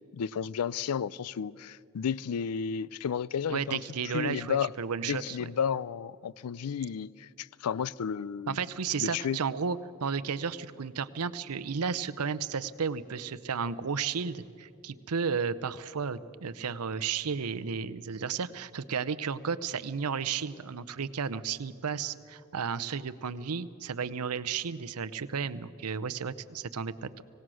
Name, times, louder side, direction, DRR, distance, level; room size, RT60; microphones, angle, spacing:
voice 1, 0.1-3.8 4.1-4.7 5.0-8.6 9.0-9.4, left 7 dB, 85° left, 0.4 m, -32 dB
voice 2, 3.5-5.4 8.5-27.2, right 6 dB, 85° right, 0.7 m, -33 dB
25.5 x 17.5 x 6.3 m
head